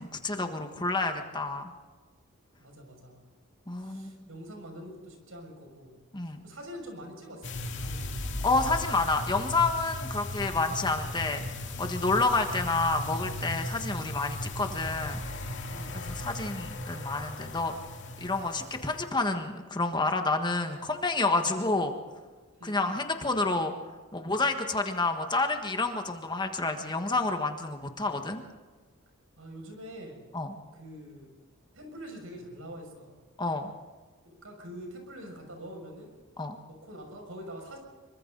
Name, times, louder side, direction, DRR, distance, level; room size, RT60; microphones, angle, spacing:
voice 1, 0.0-1.7 3.7-4.3 6.1-6.4 8.4-15.2 15.9-17.7 18.2-21.9 22.6-23.7 24.1-28.4 30.3-30.5 33.4-33.7 36.4-36.6, left 3 dB, 20° left, 5 dB, 1.5 m, -29 dB
voice 2, 2.6-3.2 3.8-5.9 6.2-8.7 15.7-16.1 22.5-23.0 29.4-30.2 30.7-31.3 31.7-33.1 34.2-36.2 36.7-37.8, equal, 75° right, 3 dB, 6.5 m, -45 dB
sound 1, 7.4-19.1, left 1 dB, 60° left, 2.8 m, -37 dB
26.5 x 24.0 x 4.0 m, 1.3 s
head